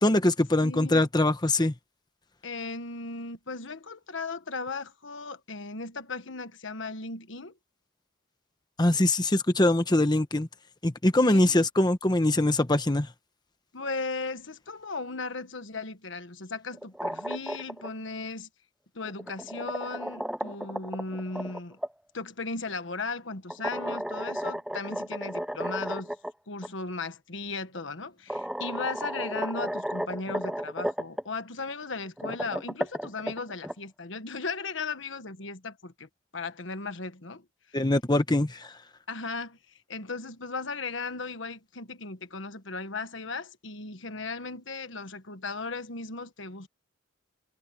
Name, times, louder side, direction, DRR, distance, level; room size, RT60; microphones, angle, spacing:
voice 1, 0.0-1.7 8.8-10.5 10.8-13.1 37.7-38.7, left 1 dB, 20° left, 1.0 m, -23 dB
voice 2, 0.6-1.1 2.4-7.5 11.2-11.7 13.7-18.5 18.9-21.8 22.1-26.2 26.5-37.4 39.1-46.7, left 3 dB, 65° left, 1.4 m, -36 dB
sound 1, 16.7-17.9 19.0-21.9 23.5-26.3 26.6-26.7 27.8-27.9 28.3-31.2 32.0-33.7, equal, 5° right, 0.6 m, -33 dB
head